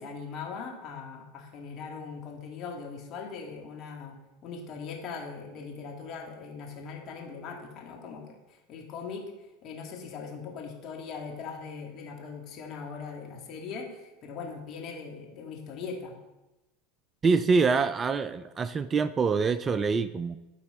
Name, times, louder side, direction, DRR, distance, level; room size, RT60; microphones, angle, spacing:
voice 1, 0.0-9.3 9.6-16.2, left 5 dB, 45° left, 0 dB, 2.0 m, -40 dB
voice 2, 17.2-20.4, right 4 dB, 25° right, 14 dB, 0.3 m, -25 dB
11.5 x 4.4 x 4.2 m, 1.0 s
hypercardioid pair, 85°, 0 cm